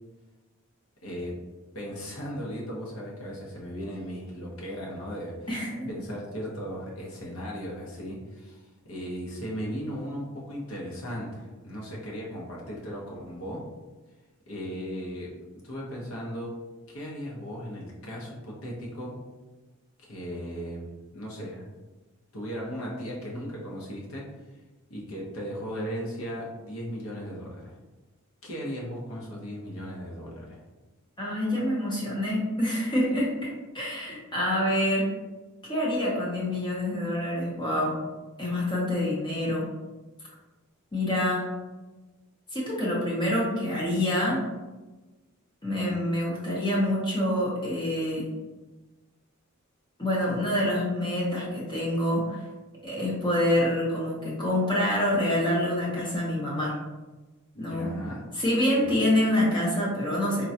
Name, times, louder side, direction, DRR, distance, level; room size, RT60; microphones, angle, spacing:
voice 1, 1.0-1.4 1.7-5.5 5.9-13.7 14.5-15.3 15.6-16.6 16.9-19.2 20.0-20.8 21.1-21.6 22.3-24.3 24.9-27.7 28.4-30.6 57.5-58.2 58.7-59.0, equal, 75° left, -3 dB, 0.9 m, -37 dB
voice 2, 5.5-5.9 31.2-35.1 35.7-38.0 38.4-39.7 40.9-41.5 42.5-44.4 45.6-48.3 50.0-52.4 52.8-56.8 57.6-57.9 58.3-60.5, left 1 dB, 20° left, -5 dB, 0.7 m, -26 dB
3.7 x 2.2 x 2.7 m, 1.2 s
head